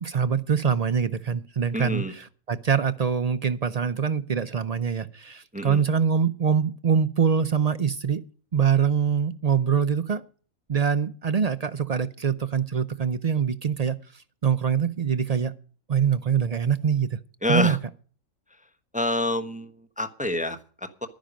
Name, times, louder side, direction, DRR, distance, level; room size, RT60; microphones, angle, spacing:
voice 1, 0.0-8.2 8.5-10.2 10.7-15.5 15.9-17.2 17.5-17.8, right 7 dB, 70° right, 0.3 m, -24 dB
voice 2, 1.7-2.1 5.5-5.8 17.4-17.8 18.9-21.1, left 1 dB, 5° right, 0.9 m, -27 dB
11.5 x 10.5 x 5.1 m
omnidirectional pair, 1.5 m